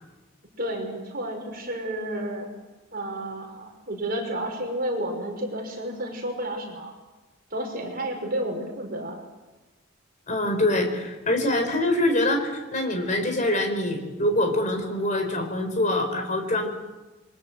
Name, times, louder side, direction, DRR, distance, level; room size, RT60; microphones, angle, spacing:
voice 1, 0.6-2.5 2.9-6.9 7.5-9.2, right 1 dB, 45° right, 2 dB, 5.8 m, -31 dB
voice 2, 10.3-16.7, left 1 dB, 35° left, 5 dB, 4.9 m, -24 dB
28.5 x 23.5 x 8.0 m, 1.1 s
head